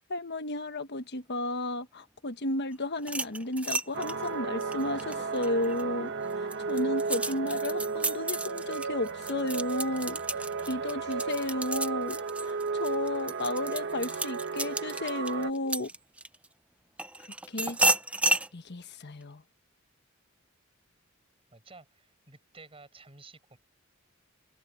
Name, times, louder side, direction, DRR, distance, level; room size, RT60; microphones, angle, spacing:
voice 1, 0.1-15.9 17.5-17.8 18.5-19.4, left 1 dB, 55° left, 1.3 m, -33 dB
sound 1, 3.0-5.8 6.3-16.4 17.0-18.5, right 2 dB, 5° right, 0.6 m, -32 dB
sound 2, 3.9-15.5, right 4 dB, 60° right, 1.6 m, -34 dB
voice 2, 21.5-23.6, right 3 dB, 25° right, 6.5 m, -52 dB
head